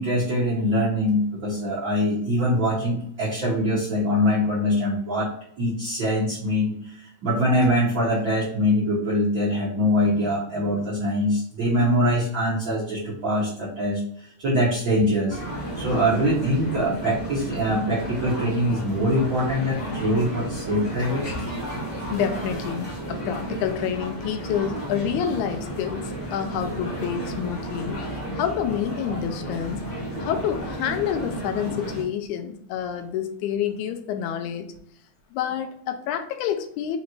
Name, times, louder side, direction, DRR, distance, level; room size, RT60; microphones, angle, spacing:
voice 1, 0.0-5.3 5.6-14.0 14.4-15.4 15.8-21.3, equal, 70° right, -7 dB, 1.1 m, -23 dB
sound 1, 15.3-32.0, right 1 dB, 50° left, 0.8 m, -32 dB
voice 2, 22.1-28.0 28.3-29.8 30.2-34.7 35.3-37.0, left 9 dB, 80° left, 7 dB, 1.9 m, -28 dB
5.1 x 2.5 x 2.9 m, 0.69 s
omnidirectional pair, 3.5 m